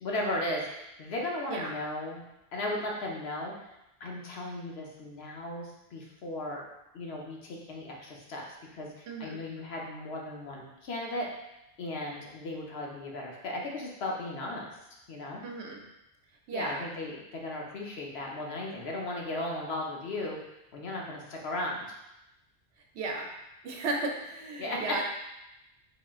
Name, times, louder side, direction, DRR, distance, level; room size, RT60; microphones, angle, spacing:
voice 1, 0.0-2.2 2.5-3.5 4.0-6.6 6.9-8.4 8.7-11.3 11.8-14.7 15.1-15.4 16.5-20.4 20.7-21.9 24.6-25.0, left 1 dB, 70° left, -1 dB, 0.9 m, -36 dB
voice 2, 9.1-9.4 15.4-15.8 16.5-16.8 22.9-23.3 23.6-25.0, right 3 dB, 75° right, 1 dB, 0.9 m, -34 dB
3.7 x 3.6 x 2.3 m, 0.92 s
omnidirectional pair, 1.1 m